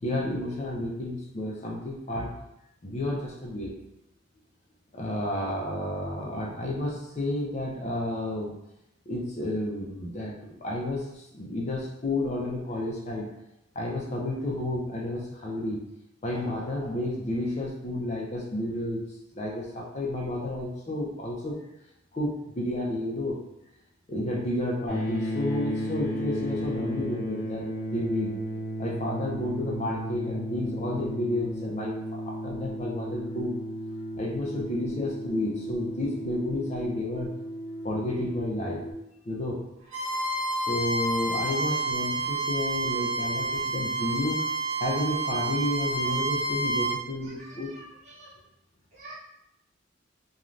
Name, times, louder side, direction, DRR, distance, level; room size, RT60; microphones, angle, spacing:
voice 1, 0.0-2.3 2.8-3.8 4.9-8.5 9.1-13.3 13.8-15.9 16.2-19.0 19.3-21.6 22.1-23.4 24.1-28.4 28.8-33.5 34.1-37.3 37.8-38.8 39.3-39.6 40.7-44.5 44.8-47.7, left 1 dB, 35° left, -2 dB, 0.5 m, -31 dB
sound 1, 24.9-38.9, equal, 60° left, 0.8 m, -34 dB
Bowed string instrument, 39.9-47.0, right 2 dB, 75° right, 1.2 m, -29 dB
voice 2, 47.2-48.3 48.9-49.2, right 2 dB, 35° right, -8 dB, 1.0 m, -47 dB
3.1 x 2.3 x 2.5 m, 0.85 s
head